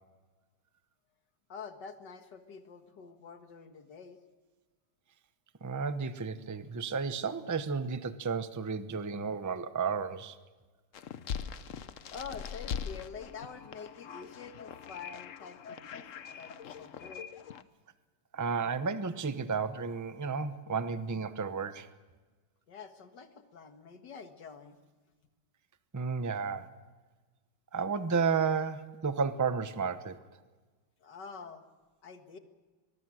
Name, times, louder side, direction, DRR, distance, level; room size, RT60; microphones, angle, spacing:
voice 1, 1.5-4.2 12.1-17.3 22.7-24.8 31.0-31.6 32.0-32.4, left 5 dB, 70° left, 7 dB, 2.2 m, -47 dB
voice 2, 5.6-10.4 18.3-21.9 25.9-26.7 27.7-30.2, right 5 dB, 20° right, 11 dB, 0.4 m, -32 dB
sound 1, 10.9-17.6, left 7 dB, 55° left, 1.0 m, -42 dB
23.5 x 21.5 x 6.4 m, 1.3 s
omnidirectional pair, 1.9 m